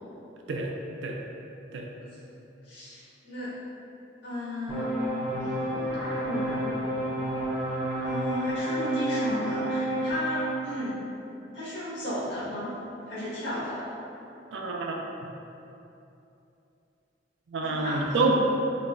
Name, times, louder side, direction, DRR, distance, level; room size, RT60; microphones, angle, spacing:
voice 1, 2.6-3.5 4.2-4.9 5.4-6.6 8.0-11.0 11.5-12.7 13.1-13.8 17.6-18.2, equal, 70° left, -11 dB, 1.5 m, -34 dB
sound 1, 4.7-10.5, right 1 dB, 10° right, 0.8 m, -30 dB
voice 2, 14.5-15.0 17.5-18.3, right 3 dB, 65° right, 1 dB, 0.4 m, -27 dB
4.6 x 2.2 x 2.5 m, 2.8 s
head